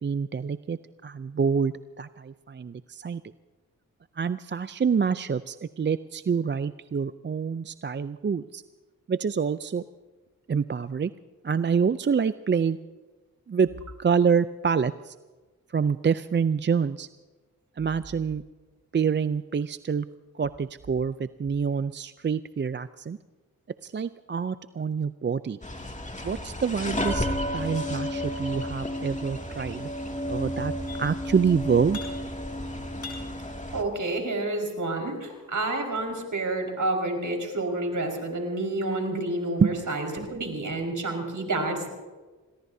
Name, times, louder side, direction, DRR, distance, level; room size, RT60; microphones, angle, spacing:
voice 1, 0.0-3.2 4.2-8.6 9.1-9.8 10.5-11.1 11.4-12.8 13.5-13.7 14.0-15.2 15.7-17.1 17.8-18.4 18.9-20.1 20.3-23.2 23.8-25.6 26.2-27.3 27.5-29.9 30.3-30.7 31.0-32.0 39.6-39.8, right 6 dB, 30° right, 14 dB, 0.5 m, -26 dB
sound 1, 25.6-33.8, left 1 dB, 20° left, 2.4 m, -32 dB
sound 2, 30.9-31.4 31.7-32.5 32.8-34.4 35.0-36.2, left 5 dB, 80° left, 4.7 m, -45 dB
voice 2, 33.7-41.9, right 2 dB, 60° right, 2 dB, 5.1 m, -29 dB
26.0 x 19.0 x 2.8 m, 1.3 s
cardioid pair, 45°, 35 cm